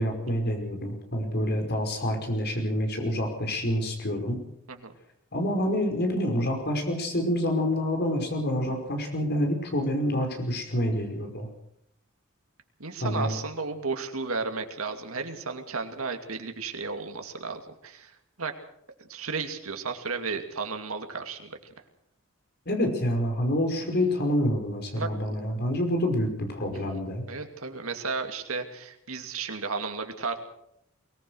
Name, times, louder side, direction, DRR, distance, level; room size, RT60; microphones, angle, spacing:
voice 1, 0.0-4.4 5.3-11.5 13.0-13.3 22.7-27.2, left 1 dB, 50° left, 4 dB, 5.3 m, -27 dB
voice 2, 12.8-18.1 18.4-18.5 19.0-21.6 25.0-25.1 27.3-30.4, right 4 dB, 85° right, 6 dB, 2.6 m, -33 dB
23.0 x 18.5 x 6.4 m, 0.75 s
head